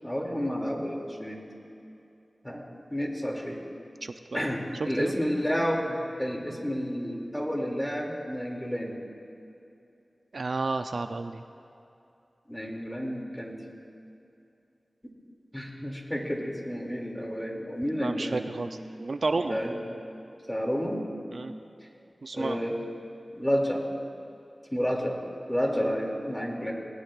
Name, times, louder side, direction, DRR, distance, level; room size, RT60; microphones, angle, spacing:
voice 1, 0.0-1.4 2.4-3.7 4.3-9.0 12.5-13.6 15.5-18.5 19.3-19.8 20.5-21.0 22.3-22.8 23.4-23.8 24.7-25.2 25.5-26.7, equal, 10° left, -1 dB, 2.6 m, -30 dB
voice 2, 4.0-4.4 4.8-5.1 10.3-11.4 18.0-18.7 19.0-19.6 21.3-21.5 22.2-22.6, right 3 dB, 75° right, 7 dB, 0.5 m, -31 dB
27.0 x 19.0 x 2.5 m, 2.7 s
wide cardioid pair, 60°, 0 cm